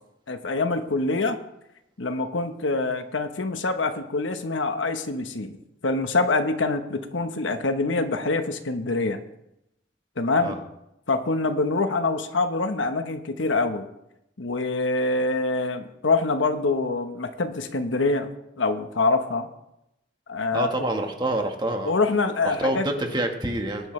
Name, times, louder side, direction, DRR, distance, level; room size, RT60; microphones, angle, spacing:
voice 1, 0.3-1.4 2.0-5.6 5.8-9.2 10.2-10.6 11.1-13.9 14.4-18.3 18.6-19.5 20.3-20.7 21.8-22.9 23.8-23.9, left 3 dB, 80° left, 7 dB, 1.1 m, -25 dB
voice 2, 20.5-21.9 22.6-23.9, right 1 dB, 25° right, 3 dB, 1.4 m, -27 dB
19.0 x 10.5 x 3.3 m, 0.85 s
head